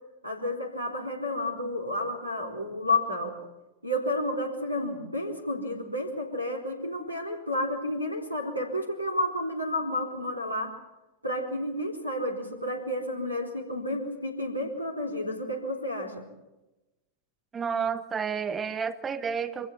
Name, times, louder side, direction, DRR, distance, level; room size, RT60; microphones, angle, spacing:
voice 1, 0.2-3.3 3.8-10.7 11.2-16.2, left 1 dB, 90° right, 3 dB, 4.0 m, -31 dB
voice 2, 17.5-19.7, right 6 dB, 20° right, 11 dB, 1.1 m, -30 dB
25.0 x 16.0 x 8.3 m, 1.0 s
figure-of-eight pair, 90°, 0 cm